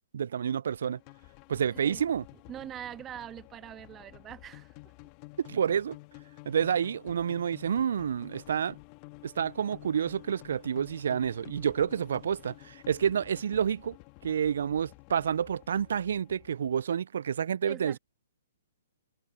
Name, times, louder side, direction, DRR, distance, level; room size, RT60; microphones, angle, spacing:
voice 1, 0.1-1.0 1.5-2.2 5.4-6.0 6.5-8.8 9.2-14.0 14.2-18.0, right 8 dB, 70° right, 0.3 m, -29 dB
sound 1, 0.7-16.8, left 25 dB, 35° left, 1.7 m, -51 dB
voice 2, 1.5-2.0 2.5-4.8 17.6-18.0, right 10 dB, 20° right, 1.4 m, -43 dB
hypercardioid pair, 135°, 0 cm